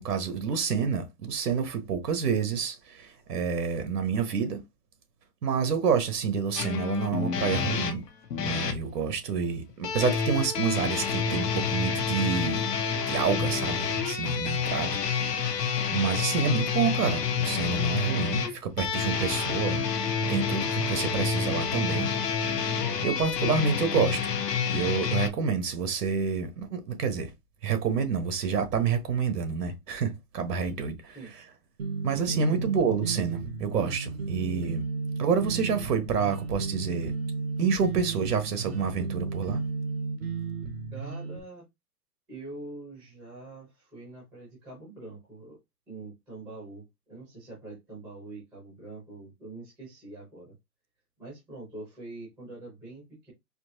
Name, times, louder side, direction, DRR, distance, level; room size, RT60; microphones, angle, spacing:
voice 1, 0.0-4.6 5.4-8.0 8.4-12.6 13.1-15.4 15.9-19.8 20.3-22.1 23.0-24.2 24.7-27.3 27.6-31.2 32.0-34.8 35.2-37.1 37.6-39.6, right 6 dB, 75° right, 1.4 m, -28 dB
sound 1, 6.6-8.8 9.8-25.3, left 6 dB, 80° left, 1.1 m, -28 dB
sound 2, 31.8-41.4, right 4 dB, 40° right, 0.8 m, -33 dB
voice 2, 32.3-32.7 40.9-41.7 42.3-45.6 45.9-50.6 51.2-53.3, right 2 dB, ahead, 0.8 m, -44 dB
4.4 x 2.8 x 2.8 m
hypercardioid pair, 175°, 48 cm